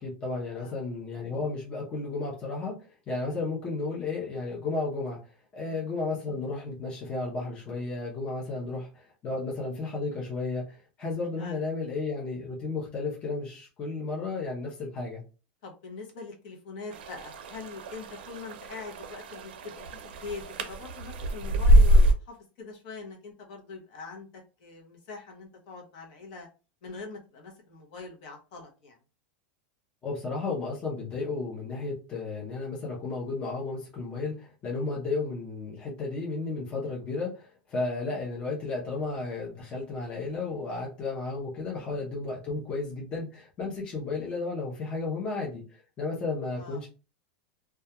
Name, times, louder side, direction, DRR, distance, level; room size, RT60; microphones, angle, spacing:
voice 1, 0.0-2.8 3.1-5.2 5.5-15.2 30.0-46.9, left 3 dB, 20° left, -3 dB, 0.6 m, -33 dB
voice 2, 15.6-26.5 26.8-29.0 41.6-42.0 46.6-46.8, left 4 dB, 50° left, 1 dB, 0.7 m, -43 dB
sound 1, 16.9-22.1, equal, 80° right, 0.5 m, -24 dB
2.3 x 2.2 x 2.8 m, 0.33 s
supercardioid pair, 170°, 6 cm